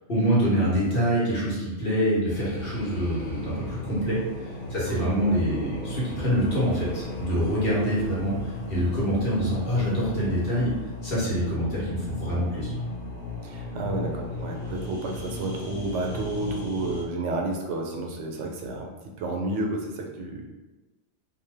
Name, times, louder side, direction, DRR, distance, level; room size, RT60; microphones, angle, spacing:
voice 1, 0.1-4.2 4.7-10.7 11.0-12.7, equal, 55° left, -7 dB, 1.2 m, -25 dB
sound 1, 2.3-17.0, left 1 dB, 75° left, 0.9 m, -35 dB
voice 2, 13.4-18.9 19.2-20.5, right 2 dB, 85° right, 1 dB, 0.9 m, -31 dB
2.6 x 2.2 x 3.2 m, 1.2 s
omnidirectional pair, 1.2 m